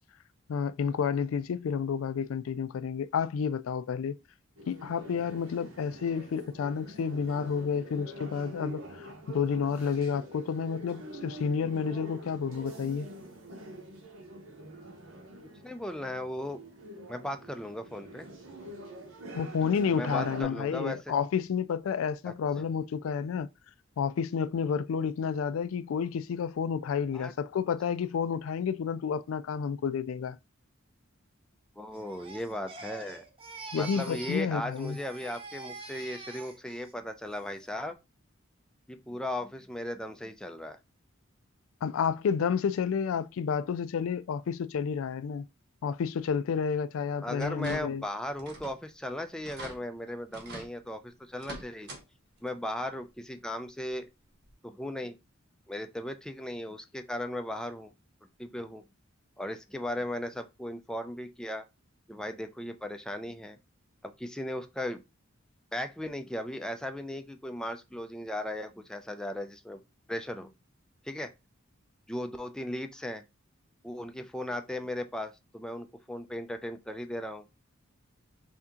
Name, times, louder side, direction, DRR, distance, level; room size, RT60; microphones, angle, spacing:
voice 1, 0.5-4.2 4.7-13.1 19.3-23.5 24.0-30.4 33.7-35.0 41.8-45.5 45.8-48.0, left 6 dB, 75° left, 0.3 m, -30 dB
sound 1, 4.6-20.4, right 1 dB, 75° right, 1.1 m, -45 dB
voice 2, 15.6-16.6 17.1-18.3 19.9-21.0 22.3-22.4 27.1-27.3 31.8-33.2 33.7-38.0 38.9-40.8 47.2-51.9 52.4-54.1 54.6-55.2 55.7-57.9 58.4-58.8 59.4-61.6 62.1-63.6 64.0-65.0 65.7-69.8 70.1-70.5 71.0-71.3 72.1-73.2 73.8-77.4, left 1 dB, 5° left, 0.4 m, -37 dB
Crying sobbing, 31.9-34.5 34.7-36.9 37.3-37.7, right 3 dB, 25° right, 0.7 m, -45 dB
sound 2, 47.4-48.1 48.4-48.8 49.1-49.2 49.4-49.8 50.3-50.7 51.3-52.0 52.4-52.5 53.9-54.0 54.5-54.6, right 1 dB, 55° right, 1.0 m, -44 dB
3.5 x 2.8 x 3.6 m
head